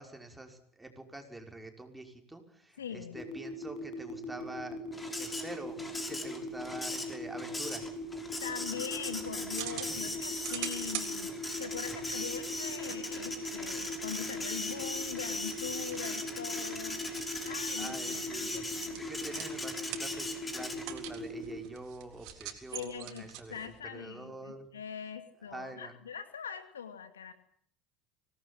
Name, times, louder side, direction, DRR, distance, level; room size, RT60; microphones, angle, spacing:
voice 1, 0.0-4.8 5.1-5.8 6.1-7.9 9.7-10.0 10.6-10.8 11.9-12.0 17.8-18.6 19.0-24.7 25.4-25.9, right 2 dB, 10° right, 4 dB, 5.8 m, -46 dB
voice 2, 2.8-3.2 8.4-11.3 11.6-19.0 22.7-27.3, left 7 dB, 80° left, 9 dB, 2.6 m, -42 dB
sound 1, 3.1-21.6, left 3 dB, 50° left, 7.7 m, -40 dB
Printer, 4.9-21.1, left 2 dB, 15° left, 6.0 m, -39 dB
sound 2, 8.9-23.8, right 12 dB, 60° right, 3.8 m, -47 dB
25.5 x 19.0 x 9.0 m, 0.62 s
figure-of-eight pair, 70°, 0 cm